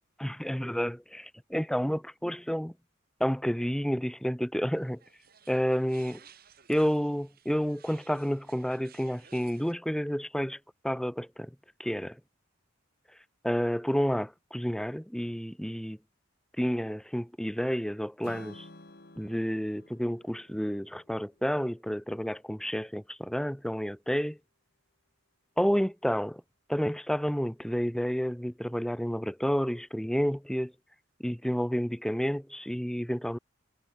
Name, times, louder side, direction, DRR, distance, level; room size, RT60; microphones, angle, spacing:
voice 1, 0.2-2.7 3.2-5.0 5.5-6.2 6.7-10.6 10.8-11.5 11.8-12.2 13.4-16.0 16.6-18.7 19.2-24.4 25.6-26.4 26.7-30.7 31.2-33.4, equal, 5° left, 0.9 m, -30 dB
sound 1, 4.8-9.7, right 9 dB, 45° right, 3.1 m, -57 dB
Strum, 18.2-22.4, left 2 dB, 50° left, 2.0 m, -53 dB
head